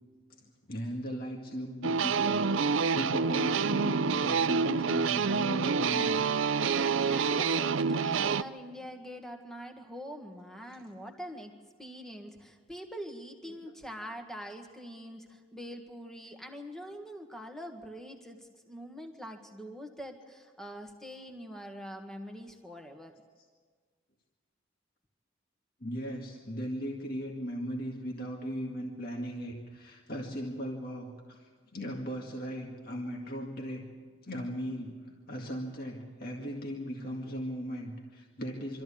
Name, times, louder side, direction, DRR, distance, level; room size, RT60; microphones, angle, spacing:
voice 1, 0.4-6.4 10.7-10.8 13.5-13.7 25.8-33.9 34.2-38.8, equal, 45° left, 0 dB, 2.0 m, -38 dB
sound 1, 1.8-8.4, right 5 dB, 75° right, 0.6 m, -27 dB
voice 2, 7.1-11.5 11.8-23.1, equal, ahead, 4 dB, 1.7 m, -44 dB
25.0 x 14.0 x 8.7 m, 1.5 s
head